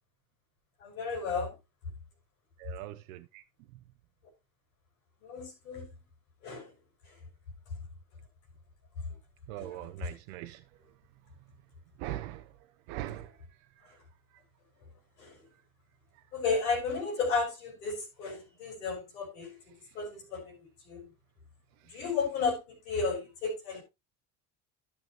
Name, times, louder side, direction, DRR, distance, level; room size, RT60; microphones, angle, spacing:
voice 1, 0.8-1.6 5.2-5.9 6.4-6.7 7.1-7.2 9.5-10.1 15.2-15.5 16.3-21.1 21.9-23.8, left 4 dB, 90° left, 4.4 m, -34 dB
voice 2, 2.6-3.4 9.5-10.6 12.0-12.4 12.9-13.3 21.9-22.0, right 15 dB, 80° right, 0.6 m, -40 dB
12.5 x 6.1 x 3.0 m
hypercardioid pair, 65°, 40 cm